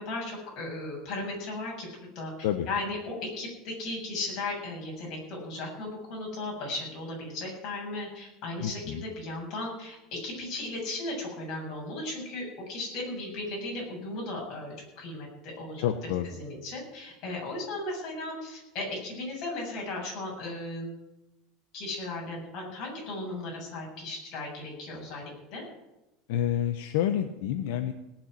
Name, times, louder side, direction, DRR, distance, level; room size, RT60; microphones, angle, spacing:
voice 1, 0.0-1.9 2.1-2.3 2.7-15.9 16.2-21.0 21.7-25.2 25.5-25.6, left 2 dB, 40° left, -2 dB, 7.5 m, -36 dB
voice 2, 8.6-9.0 15.8-16.3 26.3-27.9, left 10 dB, 70° left, 7 dB, 1.0 m, -28 dB
18.0 x 7.3 x 9.4 m, 0.95 s
cardioid pair, 175°, 0 cm